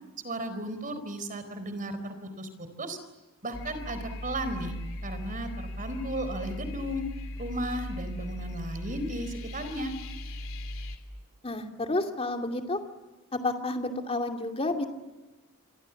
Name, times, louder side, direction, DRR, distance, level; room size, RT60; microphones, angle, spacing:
voice 1, 0.2-3.0 3.4-4.7 5.0-7.0 7.4-9.9, right 1 dB, 40° right, 10 dB, 4.3 m, -35 dB
sound 1, 3.5-11.0, left 1 dB, 65° left, 3.2 m, -38 dB
voice 2, 11.4-12.8 13.3-14.9, left 2 dB, 25° left, 4 dB, 2.5 m, -30 dB
28.0 x 25.0 x 7.2 m, 1.2 s
head